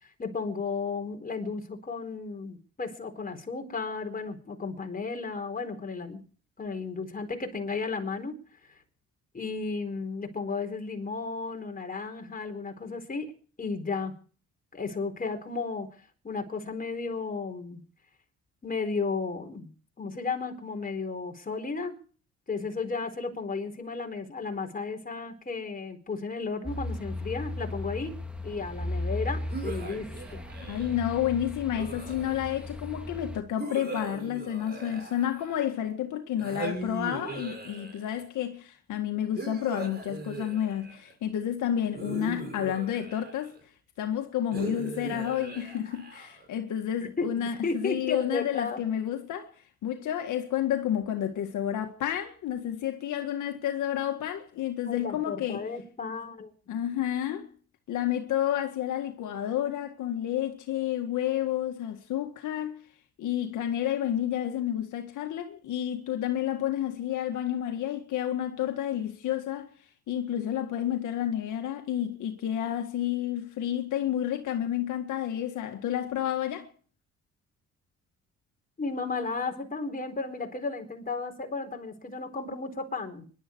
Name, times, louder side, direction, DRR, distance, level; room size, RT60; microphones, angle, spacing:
voice 1, 0.2-6.2 6.6-8.3 9.3-13.3 13.6-14.1 14.7-15.9 16.2-17.8 18.6-19.7 20.0-22.0 22.5-28.1 28.4-30.5 45.0-45.2 47.2-48.8 54.9-56.5 78.8-83.2, left 4 dB, 30° left, 4.2 m, -34 dB
sound 1, 26.6-33.4, left 1 dB, 5° right, 1.9 m, -36 dB
sound 2, 29.5-31.0 31.7-32.7 33.6-35.8 36.4-38.2 39.4-41.1 41.9-43.6 44.5-46.5, right 3 dB, 35° right, 6.5 m, -39 dB
voice 2, 30.6-43.5 44.0-49.5 49.8-55.7 56.7-57.5 57.9-62.8 63.2-69.7 70.1-76.7, left 11 dB, 80° left, 1.9 m, -30 dB
25.0 x 12.0 x 4.6 m
cardioid pair, 90°, 30 cm